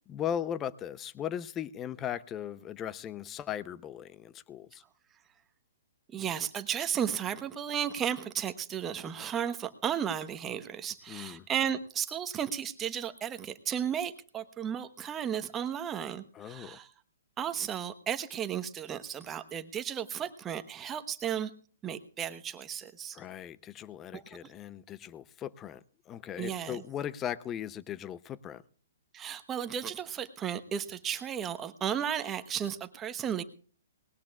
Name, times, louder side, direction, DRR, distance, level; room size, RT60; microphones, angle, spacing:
voice 1, 0.1-4.8 11.1-11.5 16.3-16.8 23.1-25.8 26.1-28.6, left 10 dB, 20° left, 17 dB, 0.6 m, -38 dB
voice 2, 6.1-16.9 17.4-21.5 21.8-23.2 24.1-24.5 26.4-26.8 29.1-33.4, right 9 dB, 20° right, 10 dB, 1.1 m, -34 dB
19.0 x 18.5 x 2.4 m, 0.40 s
hypercardioid pair, 130°, 0 cm